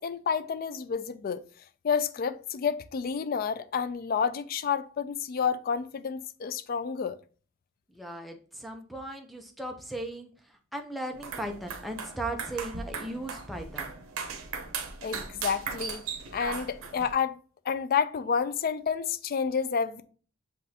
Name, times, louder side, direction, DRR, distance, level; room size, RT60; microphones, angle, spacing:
voice 1, 0.0-1.5 1.8-7.2 15.0-16.0 16.3-17.4 17.7-20.0, left 6 dB, 45° left, 0.3 m, -29 dB
voice 2, 7.9-14.0, right 1 dB, ahead, 0.6 m, -37 dB
sound 1, 11.1-17.1, right 5 dB, 90° right, 0.8 m, -38 dB
7.5 x 2.5 x 2.8 m
head